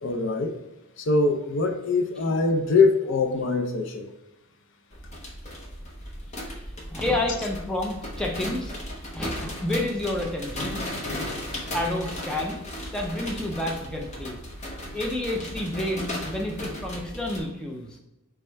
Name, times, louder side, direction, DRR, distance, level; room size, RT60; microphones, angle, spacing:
voice 1, 0.0-0.6 1.0-4.1, left 3 dB, 55° left, 6 dB, 0.5 m, -23 dB
sound 1, 4.9-17.4, left 1 dB, 30° left, 0.8 m, -36 dB
voice 2, 6.4-10.8 11.7-12.6 12.9-14.4 14.9-18.0, left 1 dB, 5° left, 0 dB, 0.5 m, -30 dB
3.4 x 3.2 x 4.4 m, 0.98 s
head